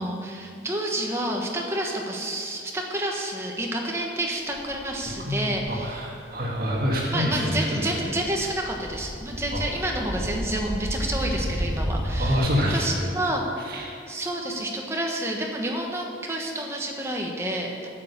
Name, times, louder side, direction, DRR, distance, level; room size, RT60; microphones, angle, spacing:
voice 1, 0.0-6.0 7.1-13.4 14.1-17.9, right 1 dB, 15° right, 0 dB, 1.2 m, -29 dB
sound 1, 4.5-5.7 6.4-6.5 6.8-12.4, equal, 10° left, 2.0 m, -32 dB
voice 2, 5.2-8.0 9.5-9.6 12.2-13.1 13.6-13.9, equal, 50° right, -3 dB, 1.7 m, -27 dB
9.1 x 8.9 x 6.7 m, 2.4 s
head